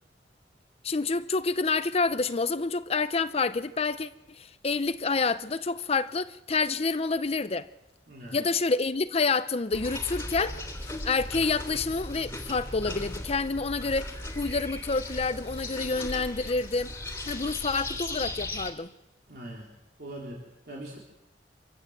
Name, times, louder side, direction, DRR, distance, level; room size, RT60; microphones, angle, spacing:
voice 1, 0.8-7.7 8.3-16.9 17.3-18.9, left 4 dB, 35° left, 0.7 m, -28 dB
voice 2, 8.1-8.4 19.3-19.7 20.0-21.0, right 1 dB, 60° right, 3.6 m, -41 dB
sound 1, 9.7-18.7, left 1 dB, 15° left, 2.8 m, -37 dB
25.5 x 15.0 x 8.0 m
head